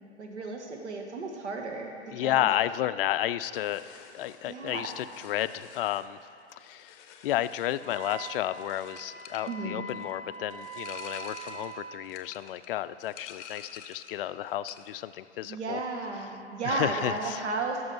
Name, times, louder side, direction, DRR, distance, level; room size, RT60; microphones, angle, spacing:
voice 1, 0.2-2.5 4.4-4.9 9.5-9.8 15.4-17.8, right 3 dB, 80° right, 2 dB, 1.6 m, -34 dB
voice 2, 2.1-3.8 4.1-6.2 6.5-7.0 7.2-15.8 16.6-17.4, left 13 dB, 55° left, 14 dB, 0.4 m, -32 dB
sound 1, 3.5-14.2 14.5-15.0, left 8 dB, 40° left, 0.9 m, -50 dB
Wind instrument woodwind instrument, 7.8-11.8, right 3 dB, 35° right, 1.8 m, -43 dB
12.5 x 6.2 x 5.5 m, 2.6 s
hypercardioid pair, 115°, 34 cm